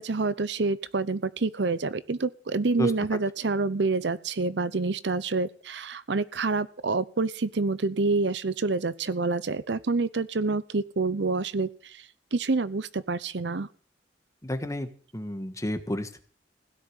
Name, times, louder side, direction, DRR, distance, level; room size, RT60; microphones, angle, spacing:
voice 1, 0.0-13.7, right 3 dB, 70° right, 16 dB, 0.8 m, -27 dB
voice 2, 14.4-16.2, left 1 dB, 20° left, 9 dB, 1.5 m, -31 dB
16.5 x 6.6 x 10.0 m, 0.43 s
head